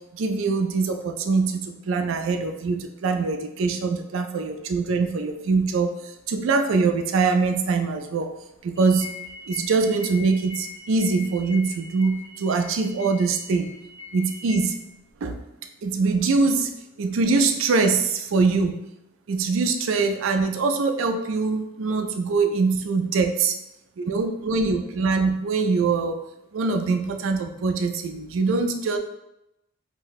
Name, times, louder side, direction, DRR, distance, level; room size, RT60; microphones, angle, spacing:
voice 1, 0.1-8.3 8.6-9.1 9.5-13.7 14.1-14.8 15.2-15.4 15.8-18.7 19.3-23.5 24.0-26.2 26.5-29.0, right 4 dB, 70° right, 6 dB, 0.4 m, -23 dB
sound 1, 8.8-14.7, left 4 dB, 20° right, 0.7 m, -41 dB
2.6 x 2.1 x 3.9 m, 0.87 s
head